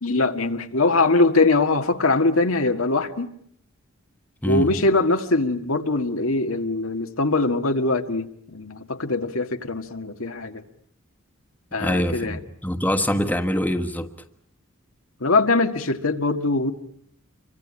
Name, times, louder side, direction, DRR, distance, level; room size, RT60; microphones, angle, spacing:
voice 1, 0.0-3.3 4.5-10.6 11.7-12.4 15.2-16.7, left 3 dB, 90° left, 6 dB, 1.8 m, -22 dB
voice 2, 4.4-4.7 11.8-14.1, equal, 10° left, 7 dB, 1.3 m, -24 dB
28.0 x 24.0 x 8.7 m, 0.66 s
head